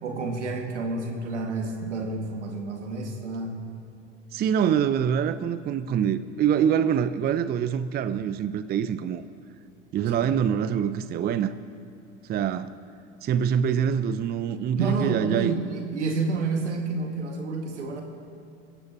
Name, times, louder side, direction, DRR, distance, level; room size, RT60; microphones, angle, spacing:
voice 1, 0.0-3.6 10.2-10.3 14.7-18.0, right 3 dB, 80° right, 3 dB, 2.1 m, -29 dB
voice 2, 4.3-9.2 9.9-11.5 12.3-12.7 13.2-15.5, right 8 dB, 30° right, 13 dB, 0.5 m, -25 dB
25.0 x 14.0 x 3.0 m, 2.6 s
hypercardioid pair, 75°, 35 cm